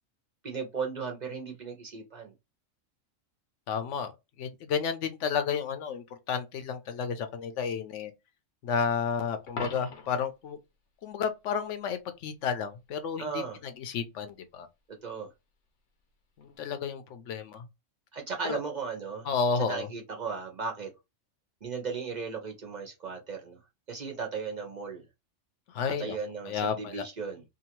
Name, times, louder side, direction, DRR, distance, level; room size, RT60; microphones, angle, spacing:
voice 1, 0.4-2.3 13.2-13.6 15.0-15.3 18.1-19.3 19.6-20.9 21.6-23.6 23.9-25.0 26.0-27.4, right 5 dB, 45° right, 0.6 m, -36 dB
voice 2, 3.7-4.1 4.4-8.1 8.6-10.6 11.0-14.7 16.4-17.7 18.5-18.6 19.2-19.9 25.7-26.2 26.4-27.0, left 6 dB, 65° left, 0.9 m, -32 dB
Coin (dropping), 9.5-10.3 16.4-16.6, left 4 dB, 85° left, 1.2 m, -39 dB
2.8 x 2.4 x 2.9 m
omnidirectional pair, 1.4 m